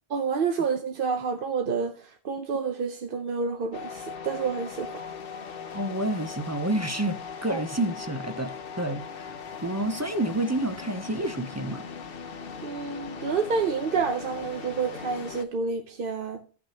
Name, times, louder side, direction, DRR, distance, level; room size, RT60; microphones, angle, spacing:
voice 1, 0.1-1.9 2.2-4.9 7.5-7.6 8.9-9.0 12.6-16.4, right 5 dB, 60° right, 0.9 m, -29 dB
sound 1, 3.7-15.4, left 6 dB, 60° left, 1.0 m, -39 dB
voice 2, 5.7-9.3 9.6-11.9, right 1 dB, 20° right, 0.5 m, -29 dB
16.0 x 6.0 x 2.8 m
omnidirectional pair, 1.1 m